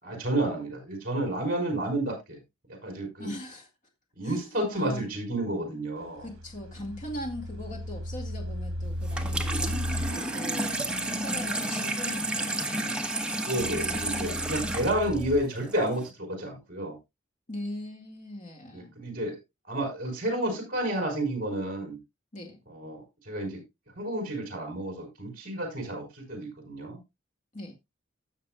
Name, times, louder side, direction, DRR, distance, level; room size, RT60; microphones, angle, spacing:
voice 1, 0.0-2.4 2.8-3.3 4.2-6.3 13.3-16.9 18.7-19.4 19.7-22.0 22.7-23.6 24.0-27.0, right 1 dB, 45° right, 4.5 m, -31 dB
voice 2, 3.2-3.7 4.2-5.1 6.2-13.1 13.6-14.6 17.5-18.9 22.3-22.6 27.5-27.7, left 1 dB, 40° left, 1.9 m, -40 dB
sound 1, 6.0-15.4, equal, 85° right, 1.0 m, -37 dB
Water tap faucet / Sink (filling or washing), 9.0-16.1, right 1 dB, 5° right, 0.9 m, -31 dB
16.5 x 6.6 x 2.3 m
head